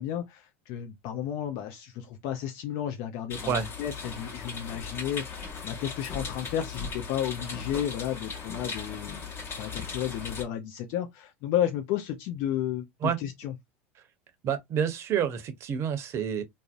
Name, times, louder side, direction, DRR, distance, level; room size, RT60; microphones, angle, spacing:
voice 1, 0.0-9.3 9.6-13.5, left 10 dB, 55° left, 0.4 m, -32 dB
sound 1, 3.3-10.4, left 5 dB, 35° left, 0.9 m, -38 dB
voice 2, 14.4-16.4, right 8 dB, 40° right, 0.6 m, -28 dB
2.6 x 2.0 x 2.4 m
hypercardioid pair, 85°, 7 cm